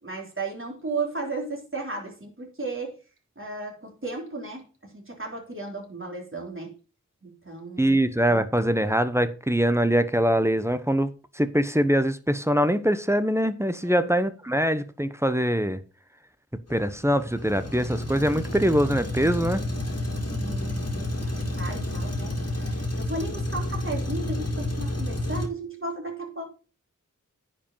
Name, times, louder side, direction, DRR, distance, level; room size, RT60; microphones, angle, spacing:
voice 1, 0.0-2.9 3.4-6.8 7.2-8.0 13.8-14.1 20.3-22.4 23.0-26.5, right 3 dB, 40° right, 3.8 m, -35 dB
voice 2, 7.8-11.1 11.3-15.8 16.7-19.6, equal, 10° right, 1.0 m, -23 dB
Truck, 16.7-25.5, left 1 dB, 50° left, 2.2 m, -30 dB
9.9 x 5.1 x 5.6 m
wide cardioid pair, 45°, 32 cm